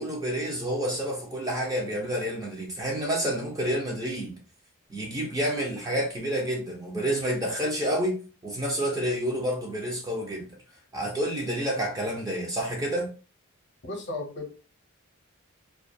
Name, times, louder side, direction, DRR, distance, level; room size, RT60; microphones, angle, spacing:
voice 1, 0.0-4.4 4.9-8.2 8.4-10.5 10.9-13.1, equal, 15° right, 0.5 m, -29 dB
voice 2, 13.8-14.5, left 2 dB, 55° left, 0.7 m, -34 dB
2.3 x 2.2 x 2.5 m
head